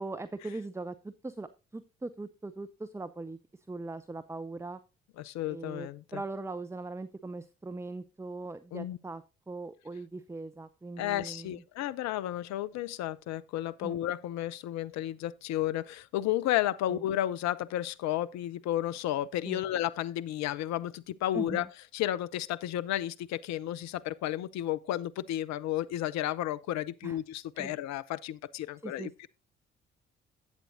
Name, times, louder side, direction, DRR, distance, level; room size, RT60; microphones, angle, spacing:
voice 1, 0.0-3.4 3.7-4.8 5.5-11.6 13.8-14.0 16.9-17.0 19.5-19.7 21.3-21.7 27.0-27.2 27.6-27.7 28.8-29.3, right 3 dB, 10° right, 0.6 m, -40 dB
voice 2, 5.2-6.2 8.7-9.0 11.0-21.7 21.9-29.3, left 13 dB, 65° left, 0.6 m, -32 dB
11.5 x 8.2 x 2.7 m
hypercardioid pair, 40°, 30 cm